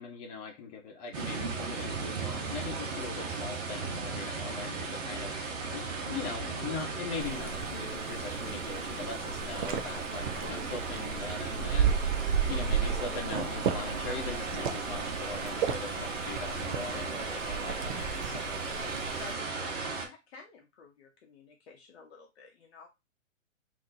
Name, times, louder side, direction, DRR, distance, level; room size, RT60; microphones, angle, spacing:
voice 1, 0.0-12.1 12.5-18.6, left 5 dB, 30° left, 0 dB, 1.1 m, -41 dB
sound 1, 1.1-20.1, right 4 dB, 65° right, 1.1 m, -36 dB
sound 2, 7.2-19.3, right 7 dB, 40° right, 0.6 m, -34 dB
voice 2, 12.1-12.4 19.1-22.9, left 5 dB, 50° left, 2 dB, 0.9 m, -51 dB
3.8 x 2.9 x 2.7 m, 0.24 s
hypercardioid pair, 135°, 41 cm